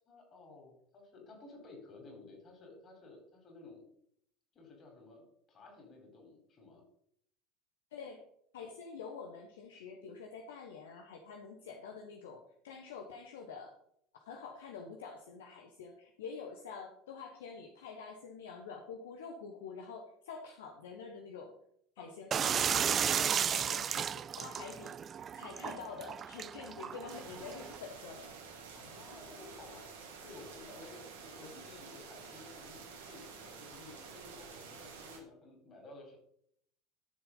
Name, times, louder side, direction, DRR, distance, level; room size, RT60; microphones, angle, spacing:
voice 1, 0.1-3.9 4.5-6.8 22.0-22.1 28.7-29.9 30.2-36.2, left 3 dB, 35° left, 2 dB, 4.1 m, -54 dB
voice 2, 7.9-8.2 8.5-13.7 14.2-21.5 22.0-25.0 25.3-28.3, left 5 dB, 65° left, 3 dB, 1.1 m, -47 dB
sound 1, 22.3-27.8, right 8 dB, 35° right, 0.4 m, -34 dB
sound 2, 27.1-35.2, right 5 dB, 70° right, 2.5 m, -50 dB
12.5 x 7.0 x 3.9 m, 0.69 s
figure-of-eight pair, 70°, 0 cm